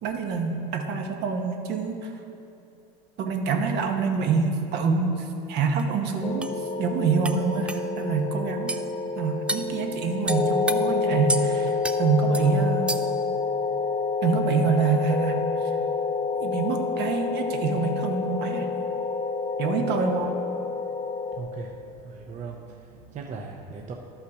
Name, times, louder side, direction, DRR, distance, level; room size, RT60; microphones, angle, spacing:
voice 1, 0.0-2.1 3.2-8.8 9.2-13.0 14.2-15.8 16.4-18.7 19.6-20.3, right 5 dB, 55° right, 4 dB, 1.0 m, -26 dB
sound 1, 5.8-5.9 6.4-6.5 7.2-7.4 7.7-7.8 8.7-8.8 9.5-9.7 10.3-10.8 11.3-11.5 11.8-12.0 12.3-12.5 12.9-13.2, right 2 dB, 5° right, 0.3 m, -29 dB
sound 2, 6.2-21.4, left 4 dB, 20° left, 0.7 m, -28 dB
voice 2, 21.4-21.8 22.0-23.9, right 4 dB, 35° right, 1 dB, 0.7 m, -38 dB
11.5 x 5.6 x 4.8 m, 2.7 s
supercardioid pair, 115°, 20 cm